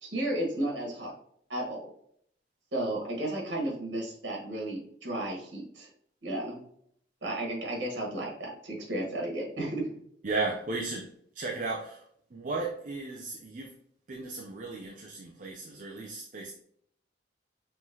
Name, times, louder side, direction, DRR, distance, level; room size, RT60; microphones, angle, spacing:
voice 1, 0.0-1.1 1.5-1.8 2.7-5.9 6.2-6.6 7.2-9.8, right 1 dB, 80° right, -1 dB, 1.4 m, -33 dB
voice 2, 10.2-12.0 12.3-13.7 14.1-16.5, right 3 dB, 45° right, 0 dB, 0.5 m, -35 dB
5.6 x 3.1 x 2.8 m, 0.67 s
head